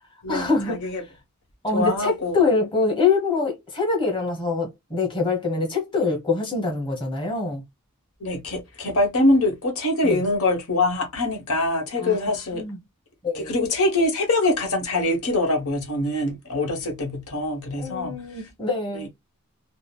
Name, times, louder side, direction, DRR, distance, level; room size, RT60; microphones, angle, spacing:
voice 1, 0.3-0.8 1.6-7.6 10.0-10.2 12.0-12.8 13.2-13.5 17.8-19.1, left 4 dB, 20° left, 1.2 m, -24 dB
voice 2, 1.7-2.4 8.2-12.6 13.3-18.2, left 2 dB, 85° left, 1.0 m, -23 dB
3.7 x 2.0 x 2.2 m
head